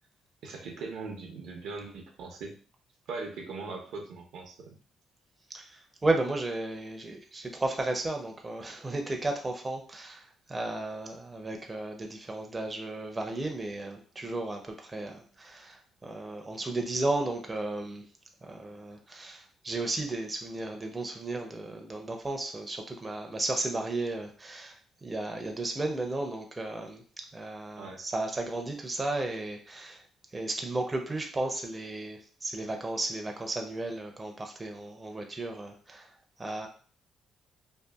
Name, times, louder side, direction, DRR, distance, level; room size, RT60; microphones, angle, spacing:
voice 1, 0.4-2.6 3.1-4.8 27.8-28.0, right 3 dB, 80° right, 1 dB, 0.6 m, -40 dB
voice 2, 5.5-18.0 18.4-27.0 27.3-30.0 30.3-36.1 36.4-36.7, right 2 dB, 25° right, 3 dB, 0.5 m, -34 dB
2.6 x 2.4 x 2.3 m, 0.41 s
cardioid pair, 90°, 0 cm